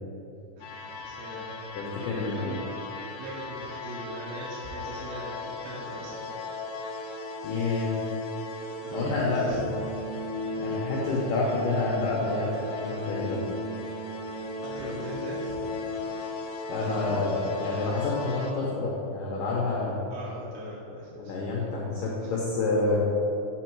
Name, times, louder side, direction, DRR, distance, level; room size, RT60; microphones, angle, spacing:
sound 1, 0.6-18.5, left 2 dB, 90° left, 2.6 m, -36 dB
voice 1, 0.6-1.6 2.3-2.7 3.2-6.3 8.8-9.6 10.5-10.9 14.3-15.5 20.1-21.3, right 1 dB, 75° right, -7 dB, 2.8 m, -40 dB
voice 2, 1.8-2.6 7.4-7.9 8.9-9.8 10.6-13.4 16.7-20.0 21.1-23.0, left 3 dB, 75° left, -3 dB, 2.1 m, -28 dB
8.1 x 4.5 x 4.5 m, 3.0 s
omnidirectional pair, 4.5 m